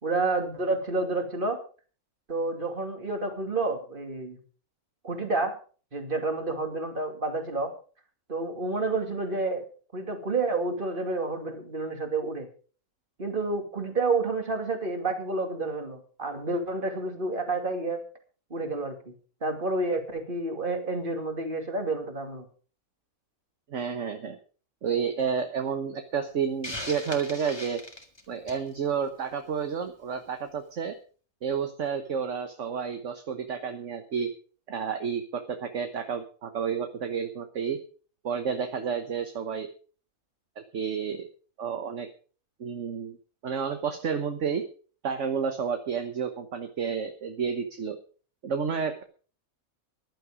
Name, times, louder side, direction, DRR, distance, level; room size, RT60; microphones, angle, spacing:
voice 1, 0.0-1.6 2.3-4.4 5.0-5.5 5.9-7.7 8.3-9.6 9.9-12.5 13.2-18.0 18.5-19.1 19.4-22.4, right 3 dB, 35° right, 5 dB, 2.7 m, -29 dB
voice 2, 23.7-24.4 24.8-27.8 28.3-30.9 31.4-34.3 34.7-37.8 38.2-39.7 40.7-41.3 41.6-42.1 42.6-43.2 43.4-44.6 45.0-48.0 48.4-49.0, right 6 dB, 55° right, 7 dB, 1.4 m, -30 dB
Hiss, 26.6-28.7, left 1 dB, 20° left, 1.8 m, -38 dB
14.5 x 11.5 x 5.0 m, 0.40 s
omnidirectional pair, 1.5 m